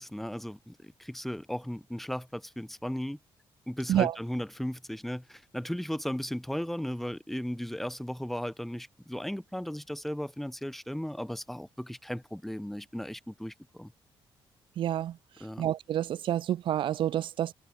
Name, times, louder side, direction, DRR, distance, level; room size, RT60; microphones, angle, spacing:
voice 1, 0.0-3.2 3.7-13.9 15.4-15.6, equal, ahead, 4.0 m, -36 dB
voice 2, 14.8-15.2 15.6-17.5, right 11 dB, 65° right, 0.7 m, -28 dB
cardioid pair, 155°, 9 cm